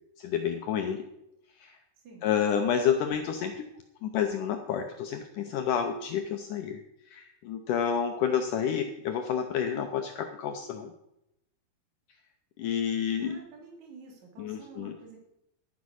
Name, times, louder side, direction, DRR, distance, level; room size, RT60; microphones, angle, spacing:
voice 1, 0.2-1.1 1.6-1.8 2.2-3.7 4.0-6.8 7.1-10.9 12.6-13.4 14.4-14.9, left 8 dB, 80° left, 6 dB, 1.9 m, -29 dB
voice 2, 13.2-15.2, right 4 dB, 50° right, 0 dB, 4.1 m, -50 dB
12.0 x 9.5 x 6.3 m, 0.84 s
omnidirectional pair, 4.6 m